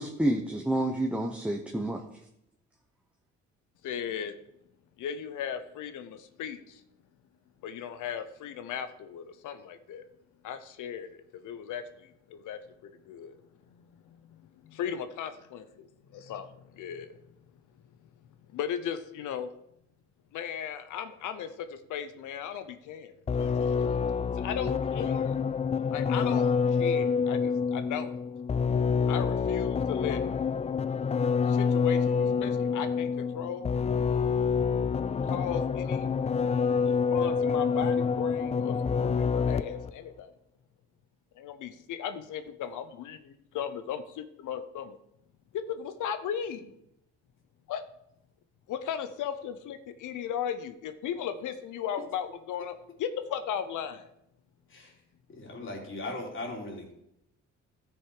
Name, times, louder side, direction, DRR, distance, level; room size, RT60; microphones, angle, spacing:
voice 1, 0.0-2.0, right 1 dB, 5° right, 2 dB, 1.1 m, -29 dB
voice 2, 3.8-4.3 5.0-6.6 7.6-10.0 10.4-12.6 13.1-13.4 13.8-15.9 16.3-16.4 16.8-17.2 18.5-19.5 20.3-23.7 24.4-25.3 25.9-26.5 26.8-28.1 29.1-30.2 31.5-33.7 35.2-36.1 36.8-38.7 39.0-40.3 41.4-45.0 45.5-46.7 47.7-47.8 48.7-54.1, left 8 dB, 80° left, 11 dB, 0.8 m, -36 dB
sound 1, 23.3-39.9, left 5 dB, 20° left, 0.3 m, -27 dB
voice 3, 55.4-56.9, left 2 dB, 40° left, 0 dB, 3.4 m, -38 dB
13.5 x 6.3 x 4.8 m, 0.80 s
cardioid pair, 90°, 30 cm